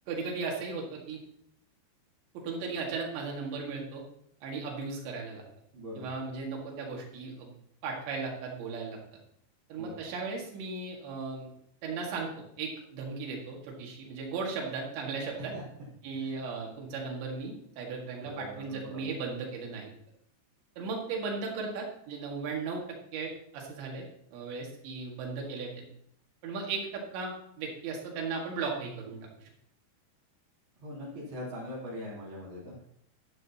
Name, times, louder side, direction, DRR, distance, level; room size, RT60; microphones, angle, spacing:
voice 1, 0.1-1.2 2.3-4.0 4.4-5.4 6.0-7.5 7.8-9.0 9.7-11.5 11.8-15.5 16.0-19.9 20.8-22.8 23.1-24.1 24.3-25.9 26.4-29.5, right 4 dB, 75° right, -1 dB, 4.2 m, -36 dB
voice 2, 5.7-6.1 9.8-10.0 15.4-15.6 16.2-16.3 18.2-19.2 30.8-32.8, left 1 dB, 40° right, -10 dB, 4.6 m, -41 dB
12.0 x 11.0 x 2.9 m, 0.72 s
omnidirectional pair, 5.3 m